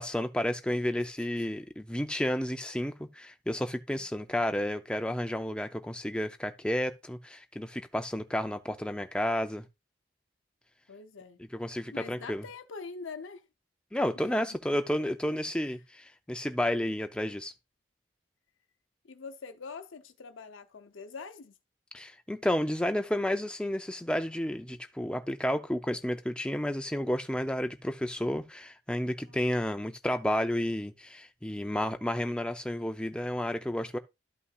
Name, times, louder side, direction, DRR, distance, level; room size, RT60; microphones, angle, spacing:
voice 1, 0.0-9.6 11.5-12.4 13.9-17.5 21.9-34.0, left 1 dB, 5° left, 0.5 m, -31 dB
voice 2, 10.9-11.4 11.9-13.4 14.3-14.6 15.3-15.4 19.0-21.5 29.3-29.5, left 4 dB, 90° left, 0.7 m, -44 dB
12.5 x 5.6 x 2.4 m
head